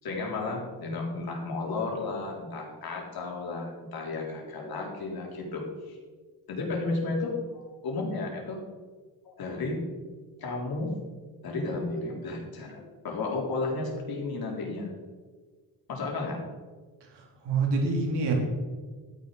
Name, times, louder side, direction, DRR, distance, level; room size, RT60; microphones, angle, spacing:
voice 1, 0.0-6.0 6.5-8.6 9.2-9.8 10.4-11.0 11.4-14.9 15.9-16.4, left 3 dB, 65° left, -1 dB, 3.9 m, -33 dB
voice 2, 17.0-18.3, right 4 dB, 85° right, -1 dB, 3.9 m, -27 dB
13.0 x 9.9 x 5.0 m, 1.4 s
cardioid pair, 100°, 40 cm